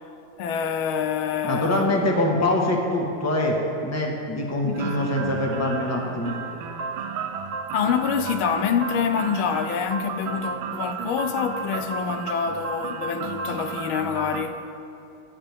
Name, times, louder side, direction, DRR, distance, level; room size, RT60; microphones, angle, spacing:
voice 1, 0.4-2.0 2.3-2.4 4.6-5.1 7.7-14.6, left 7 dB, 80° left, 1.5 m, -26 dB
voice 2, 1.4-3.6 3.8-6.3, left 1 dB, 10° left, 1.2 m, -24 dB
sound 1, 4.7-14.4, right 5 dB, 80° right, 1.7 m, -33 dB
22.5 x 9.9 x 3.6 m
omnidirectional pair, 2.2 m